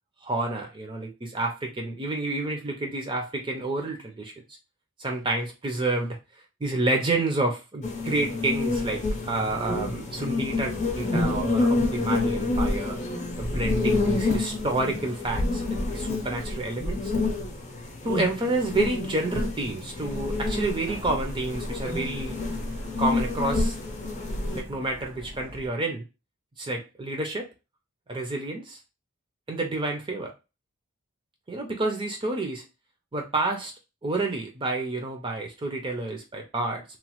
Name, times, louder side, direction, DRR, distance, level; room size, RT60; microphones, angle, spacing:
voice 1, 0.2-4.3 5.0-6.2 6.6-13.0 13.4-17.1 18.0-22.4 23.0-23.8 24.5-26.0 26.6-27.5 28.1-28.8 29.5-30.3 31.5-32.6 33.1-33.7 34.0-36.8, right 2 dB, 20° right, 2 dB, 0.4 m, -29 dB
sound 1, 7.8-24.6, left 2 dB, 30° left, 0.6 m, -28 dB
Truck, 20.0-25.7, equal, 85° right, 1.3 m, -44 dB
3.0 x 2.1 x 2.9 m, 0.28 s
head